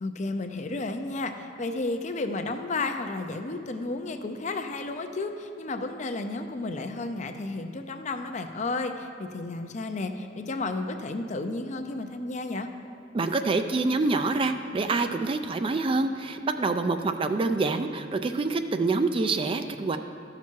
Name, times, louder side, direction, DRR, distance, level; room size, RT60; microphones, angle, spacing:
voice 1, 0.0-12.7, left 2 dB, 40° left, 7 dB, 0.5 m, -32 dB
voice 2, 13.1-20.0, right 3 dB, 30° right, 8 dB, 0.3 m, -26 dB
13.0 x 5.9 x 4.5 m, 2.5 s
head